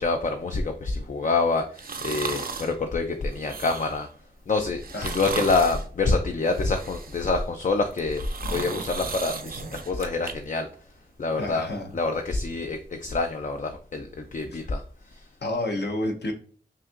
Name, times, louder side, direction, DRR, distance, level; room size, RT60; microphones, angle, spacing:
voice 1, 0.0-4.1 4.5-8.2 8.5-10.7 11.2-11.7 11.9-14.8, left 3 dB, 45° left, 5 dB, 0.4 m, -26 dB
sound 1, 1.8-2.7 3.3-4.1 4.8-5.9 6.4-7.4 7.9-10.3 10.7-10.8, right 4 dB, 55° right, 0.5 m, -35 dB
voice 2, 4.9-5.3 11.4-11.9 14.5-14.6 15.4-16.3, left 1 dB, 65° left, 3 dB, 0.9 m, -30 dB
5.5 x 2.6 x 2.4 m, 0.43 s
wide cardioid pair, 70°, 18 cm